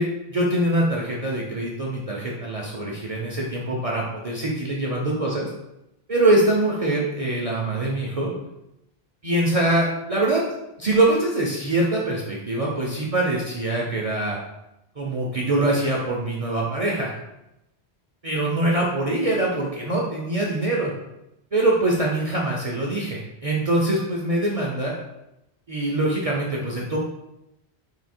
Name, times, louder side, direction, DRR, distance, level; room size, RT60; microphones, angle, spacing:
voice 1, 0.0-5.5 6.1-8.3 9.2-10.4 10.8-14.4 15.0-17.2 18.2-20.9 21.5-24.9 25.7-27.0, right 1 dB, 40° right, -3 dB, 0.6 m, -23 dB
3.8 x 2.7 x 4.3 m, 0.89 s
omnidirectional pair, 1.1 m